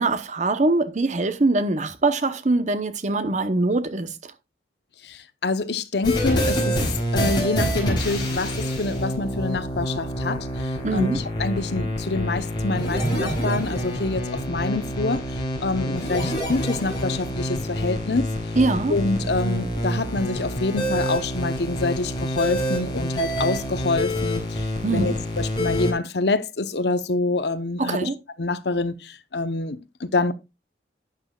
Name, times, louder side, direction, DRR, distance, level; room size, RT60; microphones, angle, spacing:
voice 1, 0.0-4.3 10.8-11.2 18.6-19.0 24.8-25.2 27.8-28.2, right 2 dB, 40° right, 0.8 m, -23 dB
voice 2, 5.1-6.8 7.1-10.5 10.9-15.2 15.6-18.3 18.9-28.1 28.4-30.3, left 3 dB, 70° left, 0.9 m, -26 dB
sound 1, 6.0-25.9, equal, 25° left, 4.6 m, -27 dB
11.5 x 9.3 x 2.3 m
head